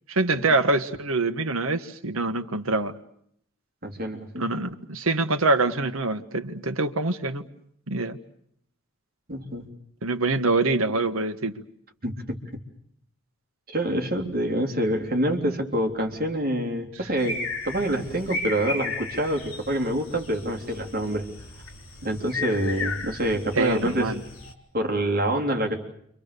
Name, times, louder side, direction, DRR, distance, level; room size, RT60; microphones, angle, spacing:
voice 1, 0.1-3.0 4.4-7.5 7.9-8.2 10.0-11.5 23.6-24.2, right 3 dB, 90° right, 8 dB, 1.6 m, -25 dB
voice 2, 3.8-4.5 9.3-9.7 12.0-12.4 13.7-21.3 22.0-24.2 24.7-25.8, right 1 dB, 45° right, 2 dB, 3.5 m, -26 dB
sound 1, 17.2-24.5, left 3 dB, 80° left, 4.2 m, -35 dB
29.0 x 25.5 x 6.9 m, 0.71 s
head